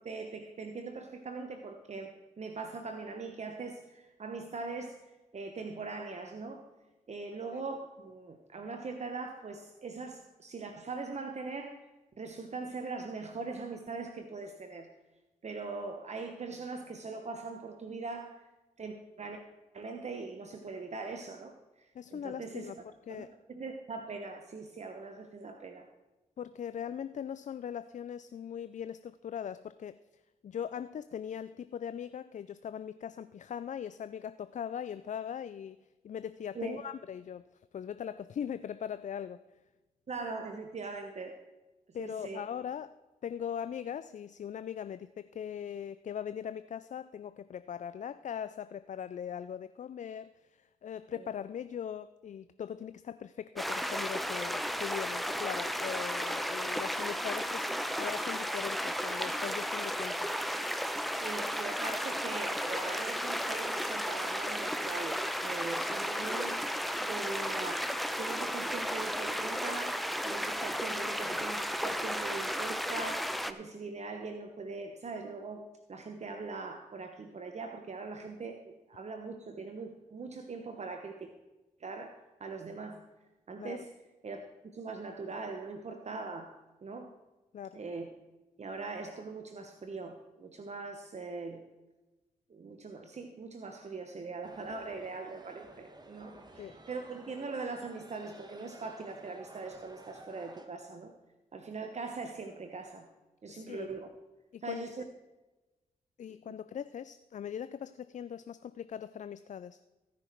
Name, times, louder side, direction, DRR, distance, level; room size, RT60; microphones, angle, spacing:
voice 1, 0.0-5.0 5.3-6.6 7.1-11.9 12.2-14.9 15.4-18.4 18.8-19.4 19.7-22.7 23.1-25.9 36.5-36.8 40.1-41.4 42.0-42.4 51.1-51.3 61.2-66.6 67.0-75.6 75.9-81.3 81.8-83.0 83.5-83.9 84.2-86.6 86.8-87.1 87.7-88.1 88.6-91.7 92.5-101.1 101.5-103.1 103.4-104.1 104.6-105.0, right 4 dB, 50° right, 5 dB, 1.0 m, -41 dB
voice 2, 21.9-22.8 23.1-23.3 26.4-30.0 30.4-35.8 36.0-37.4 37.7-39.4 41.9-43.0 43.2-57.7 58.0-60.3 83.6-83.8 87.5-87.8 96.6-96.8 103.5-103.9 104.5-104.9 106.2-109.8, left 8 dB, 55° left, 13 dB, 0.4 m, -40 dB
sound 1, 53.6-73.5, equal, ahead, 0.9 m, -34 dB
sound 2, 94.4-100.7, right 2 dB, 25° right, 1.5 m, -53 dB
17.5 x 6.0 x 4.5 m, 1.1 s
supercardioid pair, 50°, 15 cm